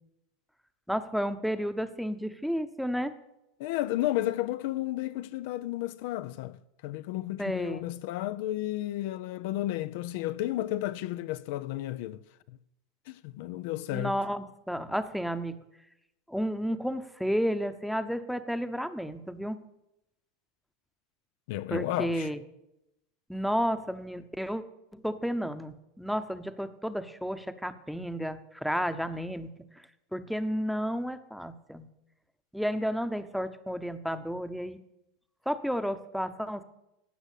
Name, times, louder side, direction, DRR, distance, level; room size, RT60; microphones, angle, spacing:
voice 1, 0.9-3.1 7.4-7.8 13.9-15.6 16.3-19.6 21.7-22.4 23.3-24.6 24.9-29.5 30.1-31.9 32.5-34.8 35.5-36.6, equal, ahead, 0.9 m, -32 dB
voice 2, 3.6-12.6 13.1-14.2 21.5-22.3, left 15 dB, 65° left, 0.5 m, -33 dB
16.5 x 6.1 x 8.4 m
supercardioid pair, 110°, 0 cm